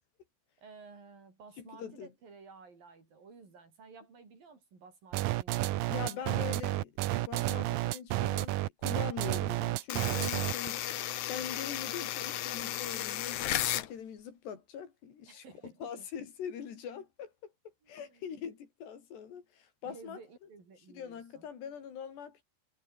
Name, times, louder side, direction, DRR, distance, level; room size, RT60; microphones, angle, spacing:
voice 1, 0.6-6.3 15.3-16.1 17.8-18.4 19.8-21.5, right 4 dB, 50° right, 8.4 m, -54 dB
voice 2, 1.6-2.1 5.9-20.5 20.9-22.4, left 8 dB, 65° left, 5.4 m, -43 dB
sound 1, 5.1-10.7, right 15 dB, 90° right, 2.0 m, -31 dB
sound 2, 9.9-13.9, left 13 dB, 85° left, 1.7 m, -34 dB
omnidirectional pair, 5.3 m